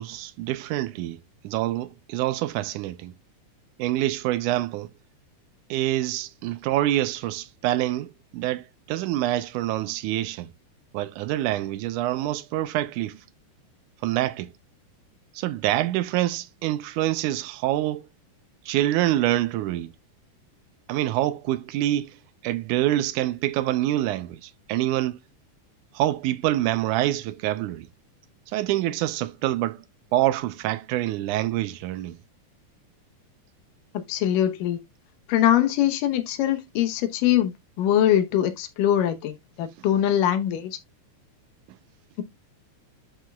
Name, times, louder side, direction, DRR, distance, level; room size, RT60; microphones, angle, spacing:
voice 1, 0.0-3.1 3.8-4.9 5.7-10.5 10.9-13.2 14.0-14.5 15.3-18.0 18.7-19.9 20.9-25.2 25.9-27.9 28.5-29.8 30.1-32.2, right 14 dB, 80° right, 1.9 m, -26 dB
voice 2, 33.9-34.8 35.3-40.8, left 11 dB, 90° left, 2.6 m, -23 dB
11.5 x 4.7 x 2.3 m
omnidirectional pair, 3.7 m